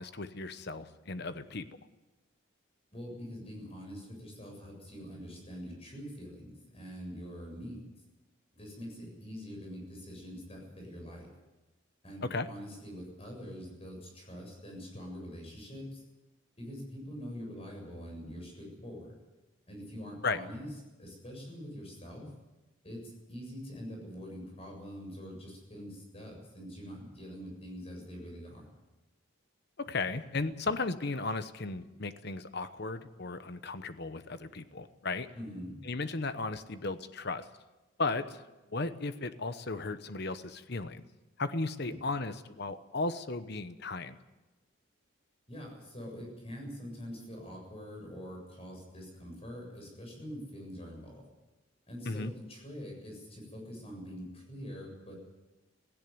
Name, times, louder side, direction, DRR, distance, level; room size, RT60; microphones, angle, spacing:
voice 1, 0.0-1.7 12.2-12.5 20.2-20.4 29.8-35.3 35.8-37.4 38.0-38.4 38.7-41.0 41.4-44.2 52.0-52.3, left 3 dB, 55° left, 11 dB, 1.0 m, -35 dB
voice 2, 2.9-7.8 8.5-11.3 12.0-16.0 16.6-19.1 19.7-20.7 21.0-22.3 22.8-28.7 35.3-35.8 41.8-42.0 45.5-51.2 51.9-55.1, equal, 30° left, 1 dB, 7.4 m, -44 dB
17.5 x 16.0 x 9.5 m, 1.1 s
head